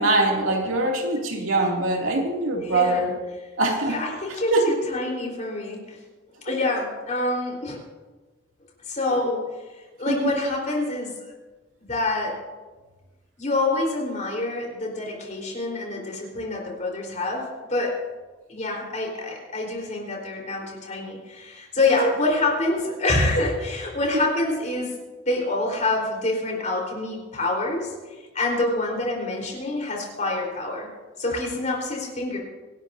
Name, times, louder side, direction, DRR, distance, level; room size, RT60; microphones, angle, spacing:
voice 1, 0.0-3.1 3.6-4.0 4.5-4.6 10.1-10.2, right 2 dB, 85° right, -1 dB, 2.6 m, -22 dB
voice 2, 2.6-3.4 3.8-6.0 6.4-7.8 8.9-9.4 10.0-11.1 11.9-12.4 13.4-18.0 18.5-24.9 25.3-30.9 31.2-32.4, left 2 dB, 40° left, -1 dB, 4.0 m, -26 dB
25.5 x 12.0 x 2.7 m, 1.3 s
head